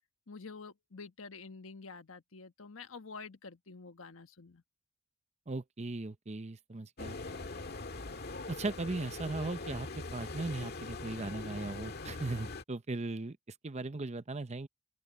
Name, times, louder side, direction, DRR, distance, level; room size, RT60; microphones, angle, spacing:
voice 1, 0.3-4.6, left 4 dB, 85° left, 1.2 m, -48 dB
voice 2, 5.5-7.2 8.5-13.4 13.6-14.7, right 2 dB, 35° right, 0.8 m, -38 dB
sound 1, 7.0-12.6, left 3 dB, 55° left, 1.8 m, -42 dB
open air
head